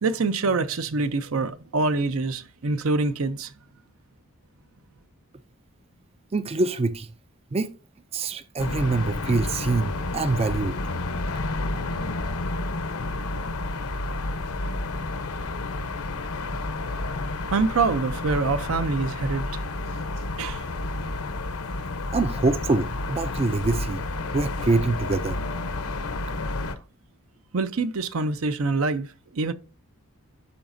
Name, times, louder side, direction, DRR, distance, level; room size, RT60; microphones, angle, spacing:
voice 1, 0.0-3.5 17.5-19.6 20.4-20.7 27.5-29.5, right 3 dB, 70° right, 0.6 m, -25 dB
voice 2, 6.3-7.1 7.5-7.7 8.1-10.8 22.1-24.0 24.3-25.4, right 3 dB, 30° right, 0.4 m, -25 dB
sound 1, 8.6-26.7, left 2 dB, 85° left, 0.9 m, -30 dB
12.0 x 4.9 x 2.6 m
head